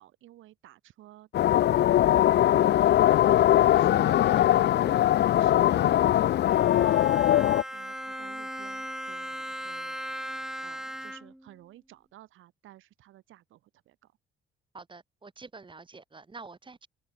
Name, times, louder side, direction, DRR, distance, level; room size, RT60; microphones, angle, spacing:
voice 1, 0.0-2.1 2.4-2.8 3.0-3.3 3.6-6.4 6.8-10.0 10.6-14.1, right 14 dB, 85° right, 4.0 m, -53 dB
sound 1, 1.3-7.6, left 12 dB, 60° left, 0.5 m, -21 dB
Bowed string instrument, 6.4-11.5, equal, ahead, 1.0 m, -38 dB
voice 2, 14.7-16.9, right 4 dB, 25° right, 2.0 m, -47 dB
cardioid pair, 90°, 20 cm